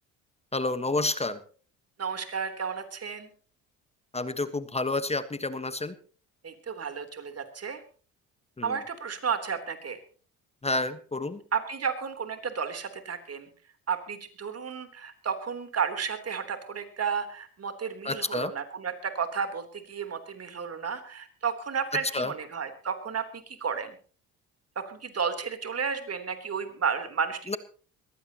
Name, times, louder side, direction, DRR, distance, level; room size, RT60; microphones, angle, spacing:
voice 1, 0.5-1.4 4.1-5.9 8.6-8.8 10.6-11.4 18.0-18.5 22.1-22.3 27.5-27.6, left 2 dB, 15° left, 12 dB, 1.3 m, -29 dB
voice 2, 2.0-3.3 6.4-7.8 8.6-10.0 11.5-13.5 13.9-24.0 24.8-27.6, right 6 dB, 40° right, 8 dB, 3.5 m, -32 dB
22.0 x 16.0 x 3.0 m, 0.41 s
hypercardioid pair, 65°, 38 cm